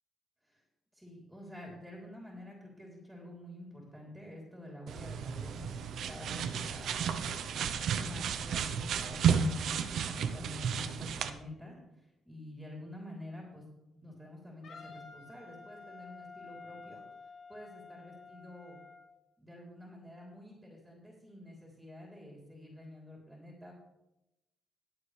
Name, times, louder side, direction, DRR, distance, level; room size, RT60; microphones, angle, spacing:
voice 1, 0.9-5.8 6.1-7.0 8.0-13.6 14.0-17.0 17.5-18.8 19.4-23.7, left 1 dB, ahead, -2 dB, 3.6 m, -49 dB
sound 1, 4.9-11.3, right 7 dB, 70° right, 0.8 m, -32 dB
Wind instrument woodwind instrument, 14.6-19.1, left 4 dB, 60° left, 2.6 m, -51 dB
21.0 x 7.0 x 3.4 m, 0.94 s
cardioid pair, 90°, 0 cm